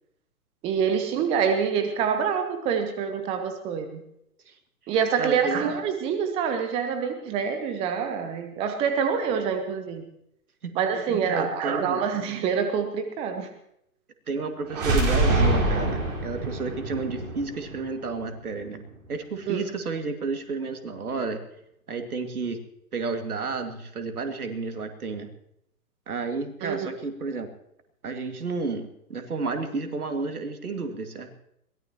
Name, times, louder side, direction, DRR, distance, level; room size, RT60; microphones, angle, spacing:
voice 1, 0.6-4.0 4.9-10.0 10.8-13.5 14.8-14.9 19.5-19.6 26.6-26.9, right 7 dB, 15° right, 7 dB, 0.8 m, -26 dB
voice 2, 5.2-5.7 10.6-10.8 11.3-12.0 14.3-18.8 19.1-21.4 21.9-22.6 22.9-25.3 26.1-27.5 28.0-31.3, right 4 dB, 70° right, 6 dB, 2.4 m, -31 dB
sound 1, 14.7-18.6, right 2 dB, 35° right, 4.7 m, -25 dB
22.0 x 17.5 x 3.0 m, 0.75 s
figure-of-eight pair, 125°, 46 cm